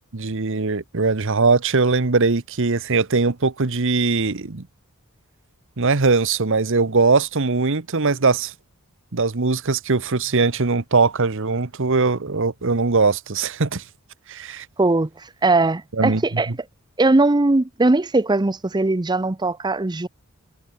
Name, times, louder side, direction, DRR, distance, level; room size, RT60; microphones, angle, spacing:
voice 1, 0.1-4.7 5.8-8.5 9.1-13.8 14.3-14.7 16.0-16.2, right 4 dB, 60° right, 1.1 m, -20 dB
voice 2, 14.8-16.5 17.0-20.1, right 2 dB, 20° right, 0.6 m, -20 dB
head